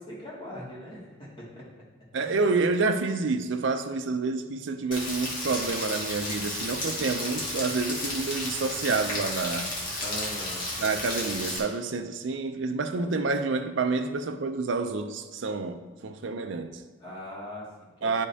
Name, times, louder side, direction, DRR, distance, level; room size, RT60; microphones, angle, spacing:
voice 1, 0.0-1.6 2.1-2.4 10.0-10.7 17.0-18.1, equal, 25° left, 2.2 m, -40 dB
voice 2, 2.1-9.7 10.8-16.8 18.0-18.3, right 3 dB, 75° right, 0.5 m, -28 dB
Rain, 4.9-11.6, left 1 dB, 45° left, 1.7 m, -33 dB
10.5 x 5.1 x 2.8 m
head